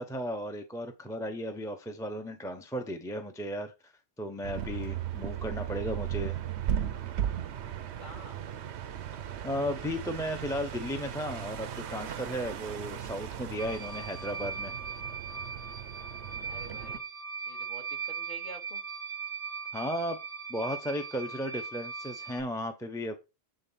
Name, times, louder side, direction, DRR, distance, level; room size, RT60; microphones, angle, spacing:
voice 1, 0.0-3.9 4.2-6.4 9.4-14.7 19.7-20.2 20.5-23.2, equal, 5° left, 5 dB, 0.9 m, -35 dB
sound 1, 4.4-17.0, right 10 dB, 90° right, 1.0 m, -37 dB
voice 2, 8.0-8.4 16.5-17.0 17.5-18.8, equal, 45° left, 0 dB, 2.9 m, -48 dB
sound 2, 13.6-22.4, right 5 dB, 60° left, 4.8 m, -39 dB
9.0 x 3.9 x 5.7 m, 0.27 s
omnidirectional pair, 1.1 m